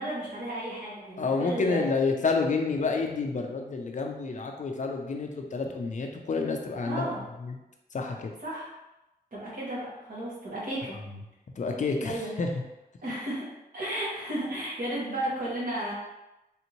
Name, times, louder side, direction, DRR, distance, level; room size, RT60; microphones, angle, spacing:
voice 1, 0.0-1.9 6.8-7.2 8.4-8.7 9.3-11.0 12.0-12.3 13.0-13.4 13.7-15.9, right 1 dB, 55° right, -7 dB, 1.3 m, -33 dB
voice 2, 1.2-7.1 7.4-7.6 7.9-8.3 11.6-12.5, left 4 dB, 50° left, 2 dB, 0.4 m, -29 dB
3.3 x 2.7 x 2.9 m, 0.96 s
wide cardioid pair, 140°, 17 cm